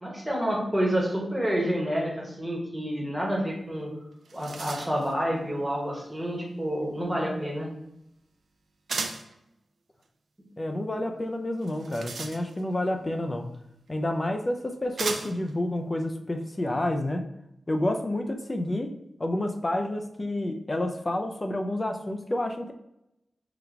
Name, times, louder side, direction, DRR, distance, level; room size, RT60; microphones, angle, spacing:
voice 1, 0.0-3.9 4.3-7.7, equal, 10° right, -2 dB, 1.0 m, -28 dB
sound 1, 3.8-3.9 4.1-5.1 8.9-9.3 11.6-12.8 13.9-14.0 15.0-15.5, right 4 dB, 75° right, 0.4 m, -35 dB
voice 2, 10.6-13.5 13.9-17.3 17.7-18.9 19.2-22.7, left 1 dB, 25° left, 5 dB, 0.4 m, -29 dB
3.9 x 2.3 x 4.4 m, 0.83 s
wide cardioid pair, 125°, 0 cm